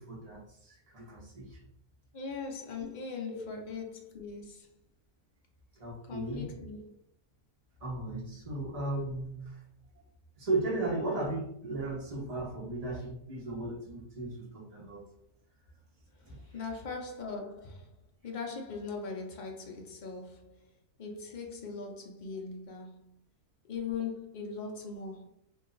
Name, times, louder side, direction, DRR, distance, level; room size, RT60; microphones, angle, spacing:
voice 1, 0.0-1.6 3.3-3.4 5.7-6.5 7.8-9.6 10.4-15.0 16.2-16.4, right 2 dB, 25° right, 1.1 m, -36 dB
voice 2, 2.1-4.8 6.1-7.0 16.1-20.7 21.0-23.2 23.7-25.3, left 5 dB, 45° left, 0.6 m, -40 dB
2.9 x 2.8 x 3.9 m
omnidirectional pair, 1.7 m